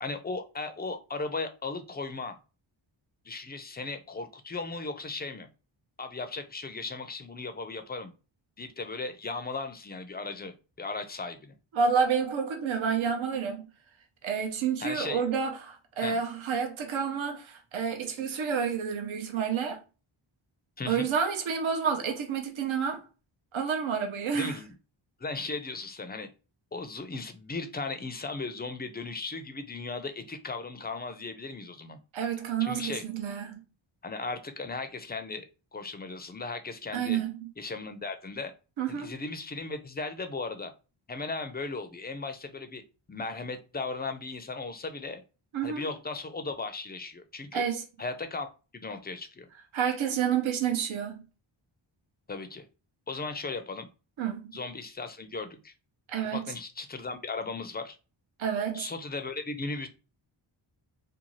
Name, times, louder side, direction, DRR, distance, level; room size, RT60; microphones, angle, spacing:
voice 1, 0.0-2.4 3.3-5.5 6.0-8.1 8.6-11.6 14.8-15.2 16.0-16.2 20.8-21.1 24.3-24.7 25.2-26.3 26.7-32.0 32.6-33.1 34.0-35.5 35.7-37.2 37.6-38.5 38.9-40.7 41.1-42.8 43.1-45.2 45.6-47.7 48.0-48.5 48.7-49.5 52.3-52.7 53.1-53.9 54.5-55.7 56.2-58.0 58.7-59.9, left 3 dB, 20° left, 0.4 m, -36 dB
voice 2, 11.7-13.7 14.2-19.8 20.9-23.0 23.5-24.5 32.1-33.6 36.9-37.5 38.8-39.1 45.5-45.9 47.5-47.8 49.7-51.2 54.2-54.5 56.1-56.5 58.4-58.9, right 7 dB, 70° right, 0.7 m, -29 dB
2.6 x 2.3 x 3.0 m
cardioid pair, 75°, 48 cm